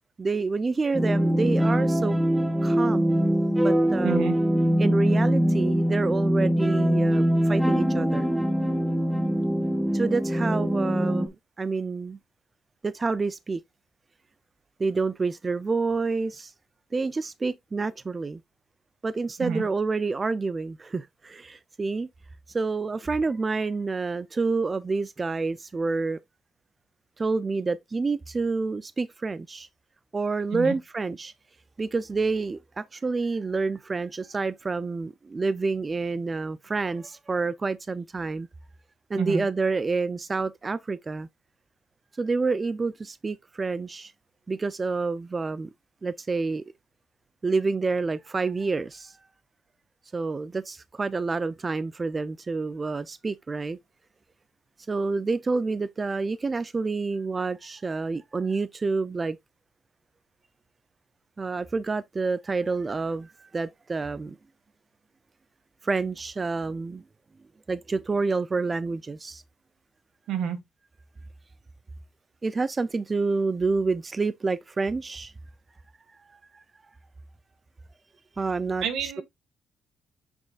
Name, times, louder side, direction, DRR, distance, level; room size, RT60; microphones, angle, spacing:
voice 1, 0.2-2.2 2.6-3.2 3.6-4.3 4.8-8.3 9.9-12.2 12.8-13.6 14.8-16.5 16.9-18.4 19.0-22.1 22.5-26.2 27.2-29.7 30.1-31.3 31.8-38.5 39.1-41.3 42.1-44.1 44.5-45.7 46.0-46.6 47.4-49.2 50.1-53.8 54.9-59.4 61.4-64.4 65.8-67.0 67.7-69.4 72.4-75.3 76.3-76.6 78.4-79.2, right 4 dB, 25° right, 0.4 m, -28 dB
sound 1, 0.9-11.3, equal, 10° right, 1.2 m, -23 dB
voice 2, 4.0-4.3 19.4-19.6 30.5-30.7 39.2-39.4 70.3-70.6 78.8-79.2, right 7 dB, 80° right, 1.8 m, -28 dB
7.2 x 6.3 x 2.4 m
cardioid pair, 100°, 0 cm